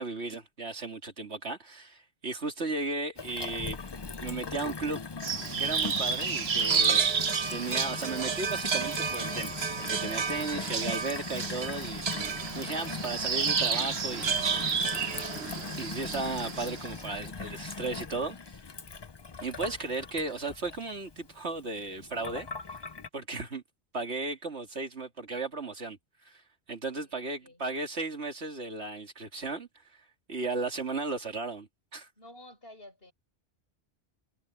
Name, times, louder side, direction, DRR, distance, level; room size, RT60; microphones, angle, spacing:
voice 1, 0.0-3.8 4.2-5.0 5.6-7.0 7.5-12.0 12.5-14.7 15.8-18.4 19.4-22.5 23.1-23.6 23.9-26.0 26.2-26.4 26.7-32.1, right 3 dB, 85° right, 2.9 m, -35 dB
Gurgling / Water tap faucet / Sink (filling or washing), 3.2-23.1, left 4 dB, 30° left, 0.6 m, -40 dB
sound 1, 5.2-16.9, right 6 dB, 70° right, 1.4 m, -30 dB
voice 2, 26.9-27.6 32.2-33.1, left 1 dB, 60° left, 8.2 m, -52 dB
omnidirectional pair, 1.1 m